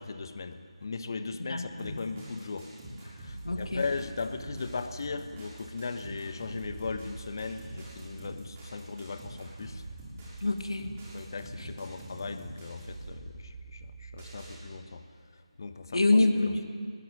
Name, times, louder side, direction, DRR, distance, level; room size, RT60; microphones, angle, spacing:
voice 1, 0.0-2.7 3.0-9.8 11.1-15.0 15.6-16.0, left 4 dB, 40° left, 9 dB, 1.4 m, -38 dB
voice 2, 1.5-2.0 3.4-3.8 10.4-10.9 11.6-11.7 15.9-16.6, left 2 dB, 60° left, 5 dB, 2.4 m, -26 dB
sound 1, 1.8-14.6, right 2 dB, 20° right, 6.5 m, -45 dB
23.0 x 20.5 x 9.2 m, 2.3 s
figure-of-eight pair, 155°, 3 cm